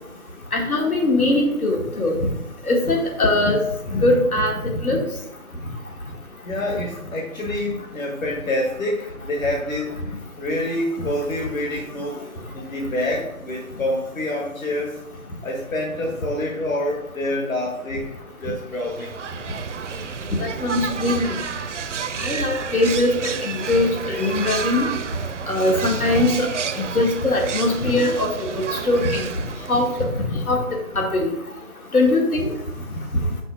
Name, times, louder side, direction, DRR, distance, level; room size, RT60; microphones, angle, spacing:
voice 1, 0.5-2.2 2.7-3.6 3.9-4.5 4.8-5.0 20.6-21.2 22.2-23.1 23.7-24.9 25.5-26.5 27.0-29.3 29.7-30.1 30.5-30.6 31.0-31.3 31.9-32.4, left 2 dB, 85° left, 0 dB, 2.0 m, -20 dB
voice 2, 6.4-12.2 12.5-15.0 15.4-19.1, left 1 dB, 70° left, -1 dB, 1.6 m, -27 dB
sound 1, 18.7-30.3, right 6 dB, 60° right, 0.5 m, -30 dB
6.1 x 5.6 x 3.8 m, 0.87 s
figure-of-eight pair, 165°, 42 cm